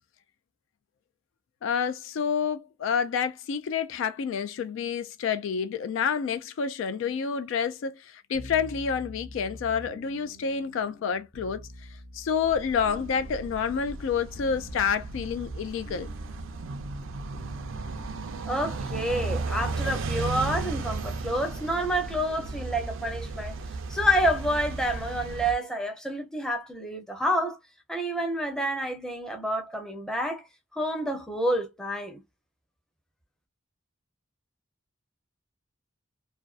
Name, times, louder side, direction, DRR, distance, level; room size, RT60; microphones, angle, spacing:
voice 1, 1.6-11.6 12.1-16.1, left 6 dB, 70° left, 0.3 m, -28 dB
sound 1, 8.3-20.2, equal, 40° left, 0.7 m, -47 dB
sound 2, 12.4-25.5, right 3 dB, 75° right, 0.5 m, -35 dB
voice 2, 18.4-23.6 23.9-27.6 27.9-30.5 30.7-32.2, equal, 5° left, 0.6 m, -28 dB
2.4 x 2.3 x 2.3 m
head